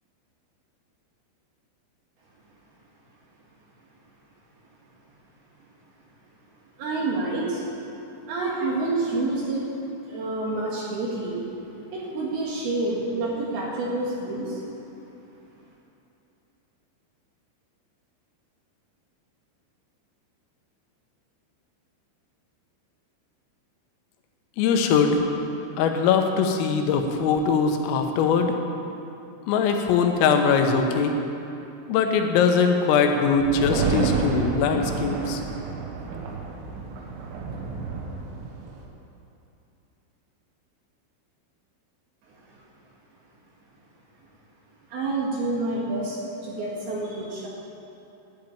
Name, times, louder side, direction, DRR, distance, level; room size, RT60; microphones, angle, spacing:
voice 1, 6.8-7.7 8.2-9.7 10.1-14.6 42.3-42.6 44.9-47.5, right 2 dB, 60° right, -4 dB, 3.1 m, -28 dB
voice 2, 24.6-25.2 25.8-28.5 29.5-31.2 31.9-35.4, left 5 dB, 90° left, 4 dB, 3.7 m, -21 dB
sound 1, 33.4-38.8, right 5 dB, 80° right, 3.7 m, -29 dB
12.0 x 7.9 x 9.0 m, 2.8 s
omnidirectional pair, 5.8 m